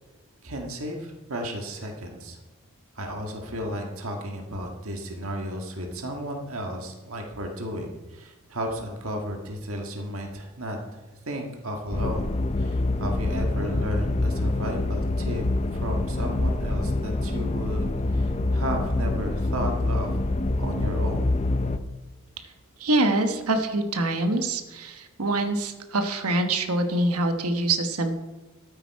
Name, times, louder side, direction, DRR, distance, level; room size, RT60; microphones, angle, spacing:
voice 1, 0.4-2.4 3.0-10.8 11.3-12.2 12.6-15.5 15.8-17.9 18.1-20.1 20.6-21.3, equal, 70° right, 2 dB, 1.7 m, -33 dB
sound 1, 11.9-21.8, left 2 dB, 30° left, 0.5 m, -26 dB
voice 2, 22.8-28.1, right 2 dB, 85° right, 6 dB, 1.2 m, -25 dB
13.0 x 9.0 x 4.7 m, 1.2 s
head